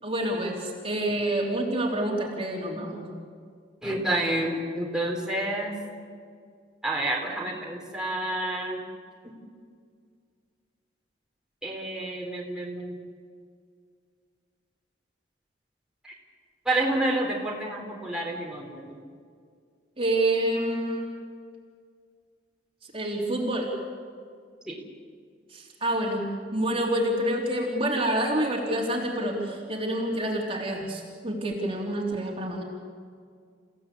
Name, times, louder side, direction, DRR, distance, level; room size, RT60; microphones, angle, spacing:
voice 1, 0.0-3.1 20.0-21.1 22.9-23.7 25.5-32.6, right 1 dB, 30° right, -1 dB, 3.3 m, -28 dB
voice 2, 3.8-5.7 6.8-8.8 11.6-13.0 16.0-16.1 16.7-19.0 24.7-24.8, right 1 dB, 5° right, -2 dB, 3.7 m, -29 dB
29.5 x 16.5 x 8.5 m, 2.1 s
head